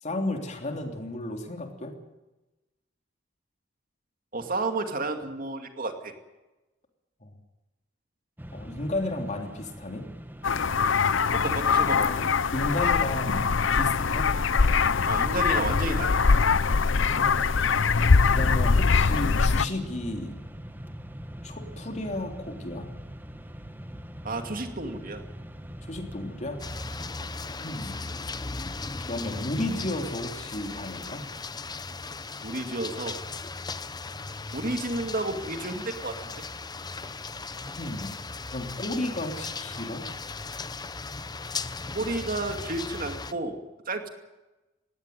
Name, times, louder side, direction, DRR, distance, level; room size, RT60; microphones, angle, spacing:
voice 1, 0.0-1.9 7.2-7.3 8.5-10.1 12.5-14.3 17.1-17.6 18.2-20.3 21.4-22.9 25.8-26.6 27.6-28.0 29.1-31.2 37.8-38.1 38.5-40.1, left 1 dB, 40° left, 4 dB, 3.3 m, -33 dB
voice 2, 4.3-6.1 11.3-12.1 15.1-16.2 24.2-25.2 27.2-27.3 32.4-33.2 34.5-36.4 41.9-43.6 43.9-44.1, right 2 dB, 50° right, 6 dB, 2.5 m, -31 dB
Mechanisms, 8.4-27.8, equal, 10° right, 1.4 m, -43 dB
sound 1, 10.4-19.6, left 5 dB, 85° left, 0.7 m, -22 dB
sound 2, 26.6-43.3, left 4 dB, 20° left, 0.8 m, -37 dB
20.0 x 17.0 x 9.4 m, 1.0 s
head